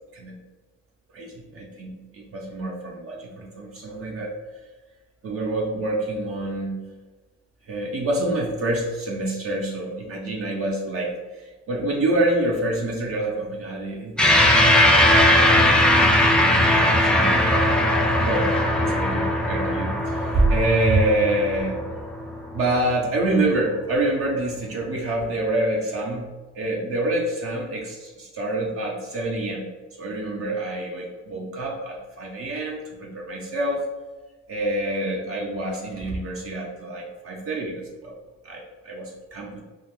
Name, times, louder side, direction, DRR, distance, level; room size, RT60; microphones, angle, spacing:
voice 1, 1.1-4.4 5.2-6.8 7.7-17.6 18.3-21.8 22.5-29.7 30.0-33.8 34.5-38.1 38.4-39.6, right 1 dB, 50° right, -1 dB, 0.6 m, -27 dB
sound 1, 14.2-22.9, left 1 dB, 5° left, 0.3 m, -19 dB
2.4 x 2.3 x 3.4 m, 1.3 s
cardioid pair, 90°, 30 cm